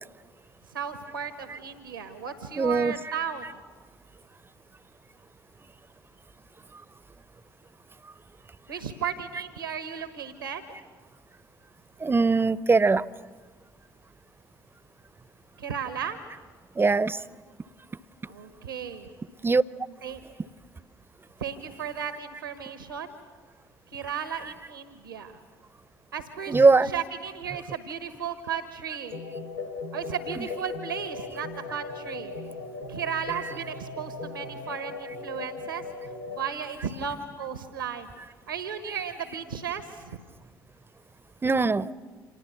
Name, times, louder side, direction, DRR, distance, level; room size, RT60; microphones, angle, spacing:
voice 1, 0.7-3.5 8.7-10.6 15.6-16.2 18.3-19.1 20.0-20.2 21.4-23.1 23.9-25.4 26.1-26.6 26.9-29.2 29.9-32.3 32.9-35.9 36.3-38.1 38.5-40.2, right 7 dB, 85° right, 10 dB, 1.4 m, -34 dB
voice 2, 2.6-3.1 3.4-3.5 6.7-6.8 8.0-8.1 12.0-13.1 16.7-17.2 19.4-19.6 24.4-24.5 26.5-26.9 30.4-30.5 33.4-33.5 41.4-41.9, right 4 dB, 20° right, 19 dB, 0.8 m, -22 dB
sound 1, 29.1-36.5, left 3 dB, 80° left, 1.4 m, -38 dB
29.5 x 27.0 x 6.9 m, 1.5 s
figure-of-eight pair, 50°, 11 cm